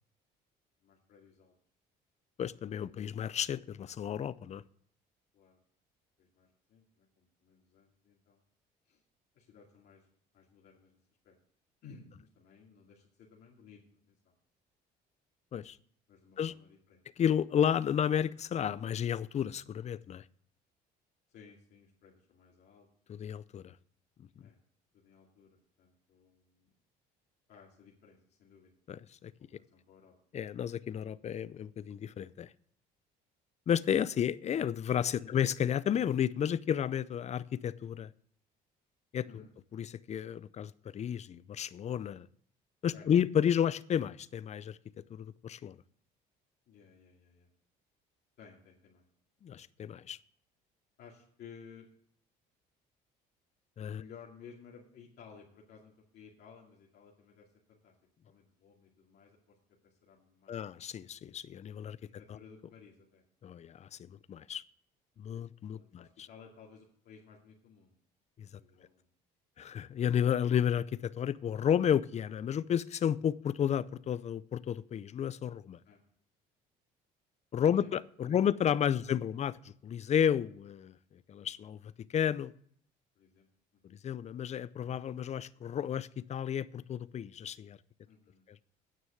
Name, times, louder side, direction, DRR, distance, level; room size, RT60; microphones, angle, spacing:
voice 1, 0.8-1.5 5.3-5.6 6.2-8.4 8.9-9.0 9.3-10.0 10.3-11.0 11.2-11.4 11.8-14.3 16.1-17.0 21.3-22.9 24.4-24.6 24.9-26.7 27.5-28.7 29.4-30.1 35.1-35.4 39.2-39.5 42.9-43.1 46.7-47.5 48.4-49.0 51.0-51.9 53.9-57.9 58.2-59.6 59.8-60.7 61.9-63.2 65.7-67.9 68.5-69.1 75.8-76.0 77.7-77.9 78.2-78.5 78.9-79.1 81.4-81.6 83.2-83.5 83.9-84.0 88.1-88.4, left 6 dB, 65° left, 2.4 m, -56 dB
voice 2, 2.4-4.6 15.5-15.8 16.4-16.5 17.2-20.2 23.1-23.7 28.9-29.3 30.3-32.5 33.7-38.1 39.1-39.4 39.7-42.3 42.8-44.8 45.1-45.8 49.4-50.2 53.8-54.0 60.5-62.0 62.3-62.4 63.4-64.6 65.2-66.3 68.4-68.5 69.6-75.8 77.5-80.9 81.3-82.5 83.9-87.8, left 9 dB, 40° left, 0.5 m, -32 dB
9.6 x 6.2 x 7.7 m
supercardioid pair, 90°, 18 cm